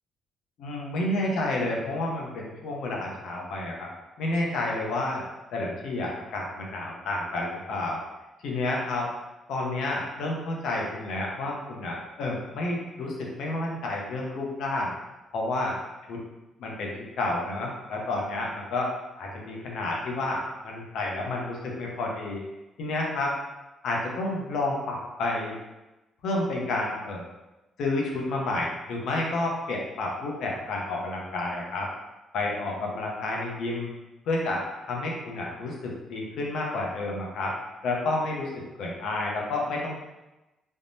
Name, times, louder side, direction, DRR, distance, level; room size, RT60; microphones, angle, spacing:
voice 1, 0.6-3.9 4.2-5.2 5.5-8.0 8.4-9.1 9.5-14.9 15.3-15.7 16.1-16.2 16.6-18.9 19.2-22.4 22.8-23.3 23.8-25.5 26.2-27.2 27.8-31.9 32.3-33.9 34.3-37.5 37.8-40.0, left 2 dB, 80° left, -2 dB, 0.7 m, -30 dB
3.5 x 2.0 x 2.6 m, 1.0 s
cardioid pair, 90°, 0 cm